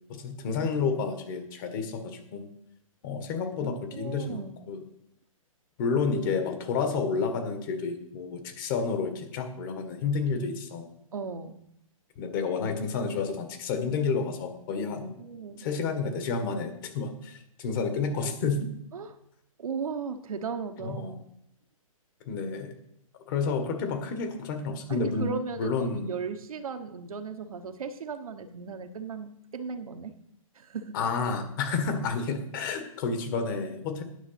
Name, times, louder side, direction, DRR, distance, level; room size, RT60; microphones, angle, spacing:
voice 1, 0.1-2.5 3.0-4.8 5.8-10.8 12.2-15.1 15.6-18.7 20.8-21.2 22.3-22.7 23.3-26.1 30.9-34.0, left 5 dB, 35° left, 6 dB, 1.7 m, -30 dB
voice 2, 3.6-4.7 11.1-11.6 15.2-15.7 18.9-19.2 19.6-21.2 24.9-30.1 30.5-31.0, right 5 dB, 80° right, 6 dB, 1.2 m, -36 dB
10.0 x 6.0 x 5.9 m, 0.75 s
hypercardioid pair, 150°, 18 cm